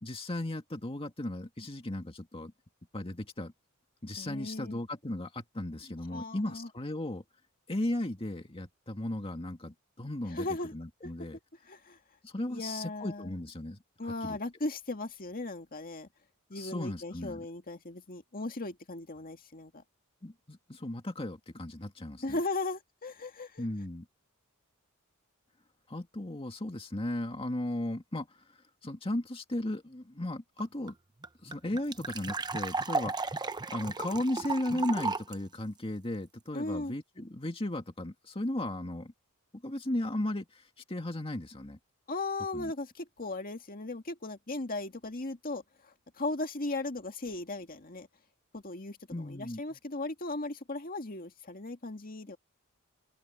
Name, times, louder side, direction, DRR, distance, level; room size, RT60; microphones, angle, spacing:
voice 1, 0.0-2.5 2.9-3.5 4.0-7.2 7.7-11.4 12.2-14.4 16.5-17.4 20.2-22.4 23.6-24.1 25.9-28.4 28.8-31.0 31.4-39.1 39.6-41.8 42.5-42.7 49.1-49.6, left 1 dB, 25° left, 2.1 m, -36 dB
voice 2, 4.2-4.8 6.1-6.7 10.3-10.7 11.0-11.1 11.7-12.0 12.5-13.3 14.0-16.1 16.5-19.8 22.2-23.6 36.5-36.9 42.1-48.1 48.5-52.4, left 2 dB, 40° left, 2.1 m, -37 dB
sound 1, 30.6-30.7 30.9-31.0 31.2-35.3, right 3 dB, 20° right, 0.8 m, -34 dB
open air
head